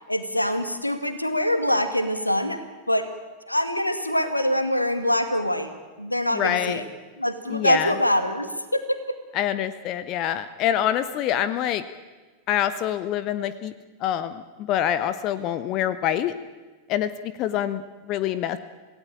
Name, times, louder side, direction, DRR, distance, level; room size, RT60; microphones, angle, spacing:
voice 1, 0.1-2.6 2.9-3.1 3.5-5.7 6.0-6.8 7.2-9.2, left 1 dB, 85° left, 9 dB, 2.1 m, -24 dB
voice 2, 6.3-6.8 7.5-7.9 9.3-11.8 12.5-13.7 14.0-16.3 16.9-18.6, left 11 dB, 40° left, 13 dB, 1.1 m, -26 dB
27.5 x 17.5 x 8.9 m, 1.3 s
figure-of-eight pair, 90°, 0 cm